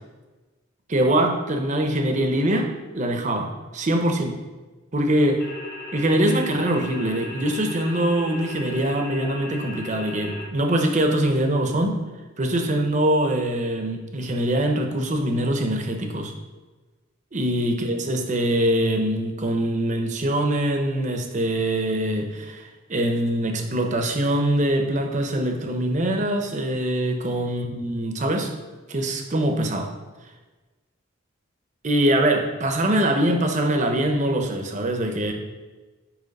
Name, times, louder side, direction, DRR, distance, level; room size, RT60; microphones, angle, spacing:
voice 1, 0.9-4.3 4.9-5.5 5.9-12.0 12.4-16.3 17.3-28.5 28.9-29.9 31.8-35.3, right 1 dB, 35° right, 4 dB, 0.7 m, -23 dB
sound 1, 5.4-10.5, left 2 dB, 40° left, 1.1 m, -37 dB
9.1 x 3.1 x 5.3 m, 1.2 s
head